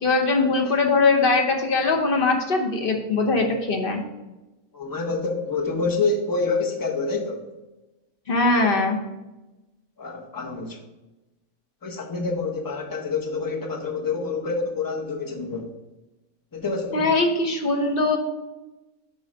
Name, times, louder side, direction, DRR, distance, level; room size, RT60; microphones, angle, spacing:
voice 1, 0.0-4.0 8.3-9.0 16.9-18.2, left 3 dB, 45° left, 3 dB, 1.0 m, -21 dB
voice 2, 4.7-7.5 10.0-10.8 11.8-15.7 16.5-17.1, left 3 dB, 20° left, 0 dB, 0.8 m, -27 dB
9.2 x 3.2 x 5.2 m, 1.0 s
omnidirectional pair, 1.5 m